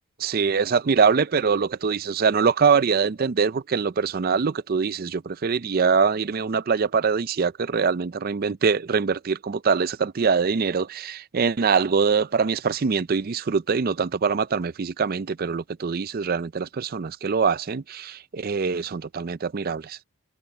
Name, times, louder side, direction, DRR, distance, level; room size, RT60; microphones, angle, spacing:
voice 1, 0.2-20.0, right 5 dB, 40° right, 0.4 m, -23 dB
head